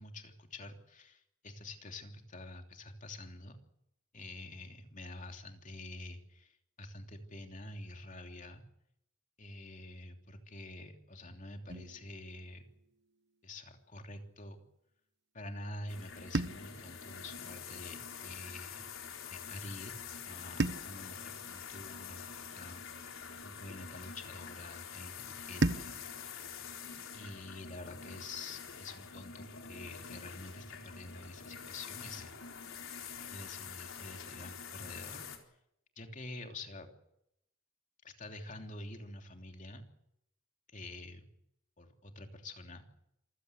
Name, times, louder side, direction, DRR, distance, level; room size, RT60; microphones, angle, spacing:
voice 1, 0.0-3.6 4.1-8.6 9.4-12.7 13.4-14.6 15.3-18.9 19.3-26.0 27.1-32.4 33.3-35.3 36.0-36.9 38.0-39.9 40.7-41.3 41.8-42.8, left 2 dB, 35° left, 4 dB, 3.1 m, -47 dB
sound 1, 11.7-13.9 16.3-18.7 20.6-23.1 25.6-28.1, right 2 dB, 55° right, 1.1 m, -40 dB
sound 2, 15.9-35.4, left 7 dB, 70° left, 4.1 m, -46 dB
27.0 x 16.0 x 8.3 m, 0.79 s
head